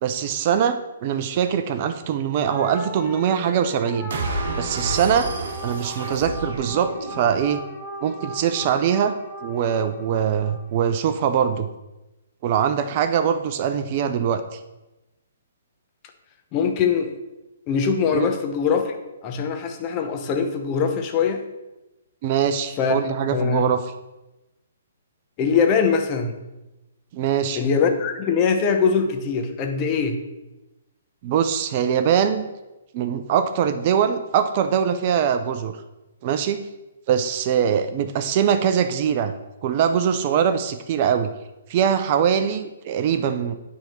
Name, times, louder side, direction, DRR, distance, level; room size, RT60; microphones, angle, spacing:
voice 1, 0.0-5.3 5.6-7.6 8.0-9.1 9.4-11.7 12.4-14.6 18.1-18.3 22.2-23.8 27.1-27.6 31.2-32.5 32.9-35.8 36.2-36.6 37.1-39.3 39.6-41.3 41.7-43.5, right 8 dB, 40° right, 9 dB, 0.6 m, -22 dB
sound 1, 2.4-11.0, right 1 dB, 5° right, 1.2 m, -37 dB
sound 2, 4.1-7.5, right 2 dB, 60° right, 1.4 m, -30 dB
voice 2, 16.5-17.1 17.7-19.0 19.2-21.4 22.8-23.0 23.3-23.6 25.4-26.4 27.6-30.2, left 6 dB, 30° left, 5 dB, 0.9 m, -22 dB
8.8 x 3.6 x 5.8 m, 1.0 s
hypercardioid pair, 135°, 0 cm